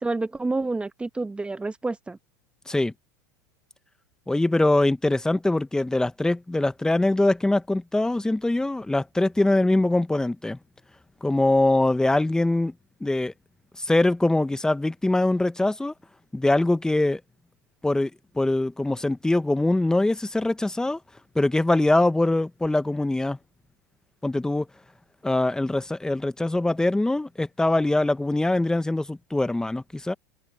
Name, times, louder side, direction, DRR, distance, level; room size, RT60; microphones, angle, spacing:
voice 1, 0.0-2.2, right 3 dB, 10° right, 1.3 m, -28 dB
voice 2, 4.3-10.6 11.2-12.7 13.0-13.3 13.8-15.9 16.3-17.2 17.8-18.1 18.3-21.0 21.3-23.4 24.2-24.7 25.2-30.1, left 2 dB, 5° left, 1.3 m, -23 dB
open air
hypercardioid pair, 100°, 10 cm